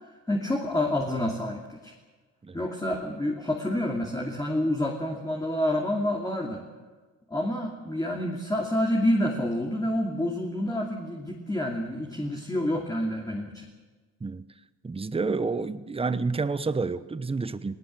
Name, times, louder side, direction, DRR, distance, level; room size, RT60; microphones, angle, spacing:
voice 1, 0.0-1.9 2.5-6.6 7.3-13.7, left 1 dB, 10° left, 0 dB, 2.7 m, -28 dB
voice 2, 14.8-17.7, right 4 dB, 20° right, 13 dB, 1.0 m, -29 dB
19.5 x 18.5 x 7.6 m, 1.3 s
cardioid pair, 90°, 30 cm